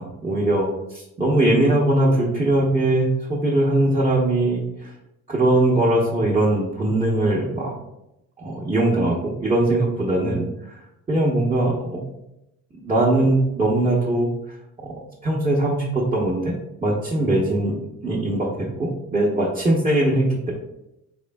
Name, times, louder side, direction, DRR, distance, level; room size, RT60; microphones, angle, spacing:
voice 1, 0.0-4.9 5.3-7.7 8.4-10.8 11.1-12.0 12.8-14.3 14.8-15.8 16.1-16.5 16.8-20.5, right 1 dB, 20° right, -7 dB, 0.8 m, -21 dB
3.6 x 3.4 x 2.2 m, 0.87 s
cardioid pair, 90°, 30 cm